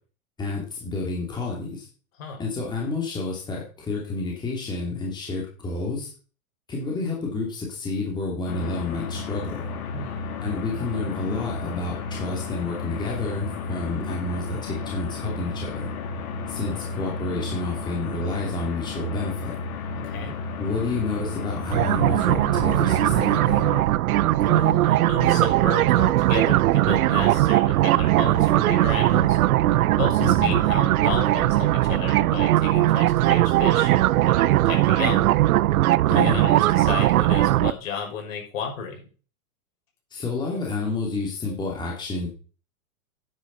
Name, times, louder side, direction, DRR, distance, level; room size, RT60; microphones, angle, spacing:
voice 1, 0.4-1.8 2.4-6.1 6.7-9.7 10.4-15.9 16.5-19.6 20.6-23.6 30.2-30.6 36.1-36.4 40.1-42.3, left 3 dB, 10° left, -2 dB, 2.8 m, -29 dB
sound 1, 8.5-23.8, left 4 dB, 80° left, 3.4 m, -33 dB
voice 2, 9.9-10.2 20.0-20.4 24.5-29.4 29.9-35.3 36.0-39.0, left 6 dB, 65° left, 2 dB, 6.2 m, -33 dB
sound 2, 21.7-37.7, right 15 dB, 80° right, 0.6 m, -19 dB
10.5 x 9.6 x 4.1 m, 0.37 s
supercardioid pair, 165°, 42 cm